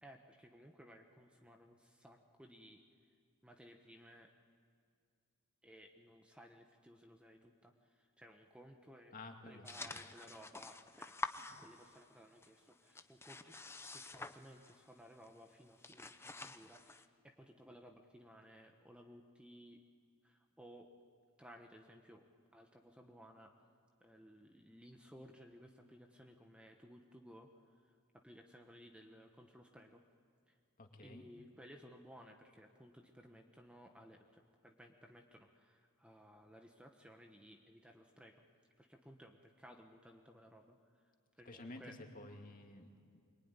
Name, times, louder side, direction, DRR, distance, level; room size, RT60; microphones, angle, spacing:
voice 1, 0.0-2.8 3.4-4.3 5.6-9.1 9.5-11.1 11.6-13.6 13.9-19.8 20.2-20.9 21.4-22.2 22.5-23.5 24.0-27.8 28.1-30.0 30.5-30.6 31.0-38.3 38.8-42.0, equal, 5° right, 3 dB, 1.1 m, -59 dB
voice 2, 9.1-9.7 9.9-10.0 30.8-31.3 41.5-43.2, left 2 dB, 40° left, 3 dB, 2.4 m, -52 dB
sound 1, 9.7-12.2 12.4-14.9 15.2-15.4 15.7-17.1, left 2 dB, 10° left, 0.8 m, -48 dB
23.5 x 23.5 x 9.8 m, 2.2 s
head